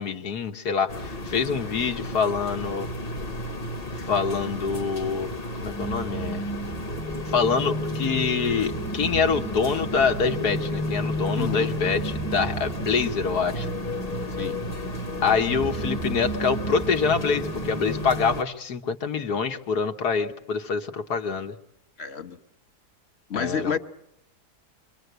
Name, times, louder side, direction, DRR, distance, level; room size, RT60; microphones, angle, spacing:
voice 1, 0.0-2.9 4.0-5.3 5.6-6.5 7.3-13.7 15.2-21.6 23.3-23.8, left 5 dB, 75° left, 5 dB, 1.8 m, -25 dB
sound 1, 0.9-18.4, equal, 25° left, 1.1 m, -34 dB
sound 2, 5.7-18.4, equal, 10° left, 0.8 m, -33 dB
voice 2, 11.3-11.7 14.4-14.6 22.0-22.4 23.3-23.8, left 7 dB, 45° left, 9 dB, 1.3 m, -29 dB
26.5 x 23.5 x 8.1 m, 0.77 s
omnidirectional pair, 1.7 m